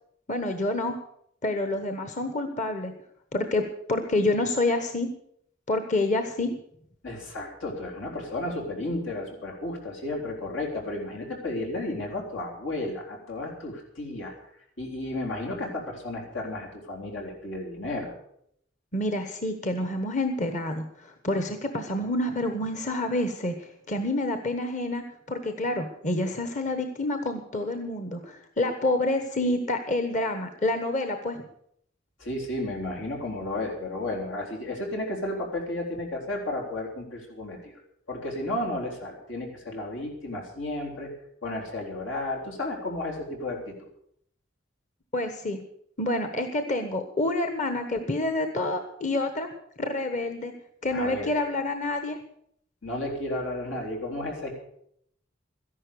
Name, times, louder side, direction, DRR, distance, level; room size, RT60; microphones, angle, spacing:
voice 1, 0.3-0.9 1.4-2.9 3.3-5.1 5.7-6.5 18.9-25.0 25.3-31.4 45.1-45.6 46.0-49.5 49.8-50.5 50.8-52.2, left 2 dB, 40° left, 7 dB, 1.2 m, -28 dB
voice 2, 7.0-14.3 14.8-18.1 32.2-37.8 38.1-41.1 41.4-43.9 50.8-51.3 52.8-54.5, left 1 dB, 90° left, 0 dB, 3.8 m, -33 dB
13.5 x 11.0 x 6.9 m, 0.70 s
head